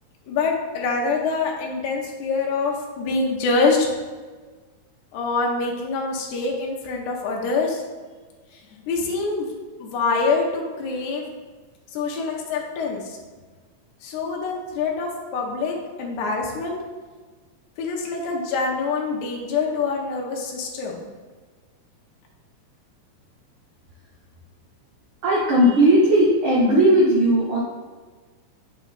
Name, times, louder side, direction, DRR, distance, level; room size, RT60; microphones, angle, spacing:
voice 1, 0.3-3.9 5.1-7.8 8.9-9.5 9.8-11.3 11.9-13.2 14.0-16.8 17.8-21.1, left 4 dB, 75° left, -1 dB, 2.1 m, -25 dB
voice 2, 25.2-27.6, right 1 dB, 80° right, -5 dB, 1.2 m, -17 dB
8.2 x 3.2 x 3.9 m, 1.4 s
omnidirectional pair, 3.8 m